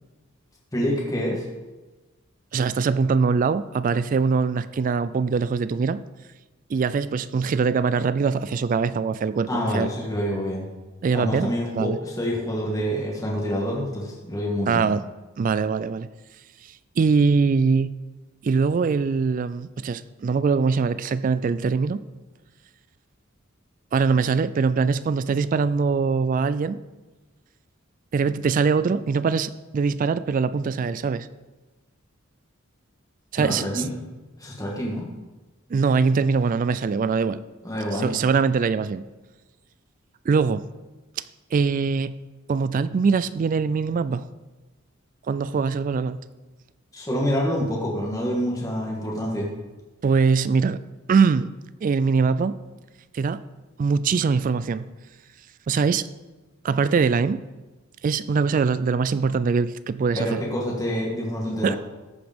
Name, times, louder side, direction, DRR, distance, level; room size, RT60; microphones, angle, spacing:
voice 1, 0.7-1.4 9.5-10.7 11.1-14.8 33.3-33.9 34.4-35.1 37.6-38.2 46.9-49.5 60.2-61.8, equal, 15° left, -3 dB, 1.7 m, -27 dB
voice 2, 2.5-6.0 6.7-9.9 11.0-12.0 14.7-15.1 15.4-16.1 17.0-17.9 18.4-22.0 23.9-26.8 28.1-31.3 33.3-33.8 35.7-37.4 37.9-39.0 40.3-40.6 41.2-41.3 41.5-42.1 42.5-44.2 45.3-46.2 50.0-50.8 51.1-51.5 51.8-52.6 53.1-53.4 53.8-54.8 55.7-56.1 56.6-57.4 58.0-60.4 61.6-61.8, right 5 dB, 40° right, 15 dB, 0.3 m, -22 dB
14.0 x 5.1 x 5.2 m, 1.2 s
head